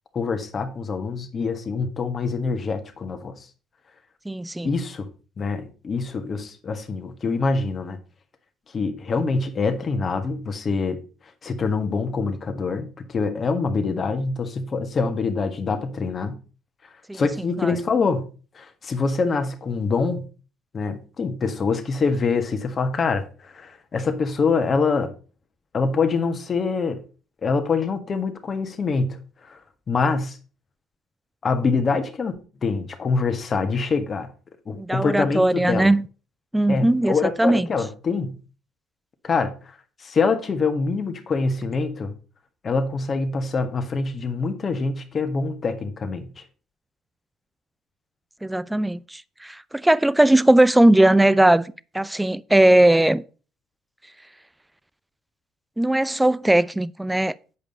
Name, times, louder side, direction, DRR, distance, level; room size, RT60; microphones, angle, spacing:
voice 1, 0.1-3.5 4.6-5.0 5.4-8.0 8.7-11.0 11.4-16.4 17.1-18.2 18.5-20.3 20.7-25.1 25.7-27.0 27.4-29.6 29.9-30.4 31.4-32.4 32.6-34.3 34.6-35.9 36.7-38.3 39.2-39.5 40.0-42.1 42.6-46.4, left 4 dB, 40° left, 1.6 m, -25 dB
voice 2, 4.3-4.7 17.1-17.2 17.6-17.7 34.8-36.1 36.5-37.7 48.4-53.2 55.8-57.3, right 1 dB, 10° right, 0.5 m, -19 dB
8.5 x 5.3 x 5.3 m
supercardioid pair, 65°, 0 cm